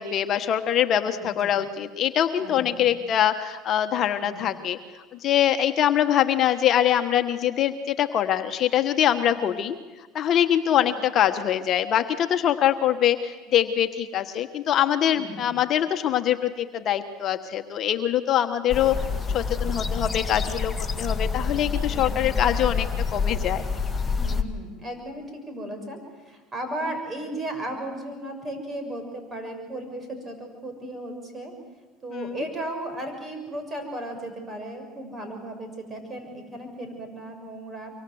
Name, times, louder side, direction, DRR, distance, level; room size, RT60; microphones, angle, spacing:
voice 1, 0.0-4.8 5.2-9.8 10.1-19.0 19.3-20.7 21.0-23.6 32.1-32.4, left 10 dB, 50° left, 7 dB, 1.3 m, -23 dB
voice 2, 1.2-1.5 2.4-3.0 4.2-4.6 9.2-9.4 10.7-10.9 15.1-15.5 21.9-22.2 24.1-31.5 32.0-37.9, right 1 dB, 25° right, 6 dB, 6.8 m, -36 dB
sound 1, 18.7-24.4, left 5 dB, 15° left, 1.9 m, -27 dB
24.5 x 24.5 x 7.9 m, 1.3 s
hypercardioid pair, 80°, 0 cm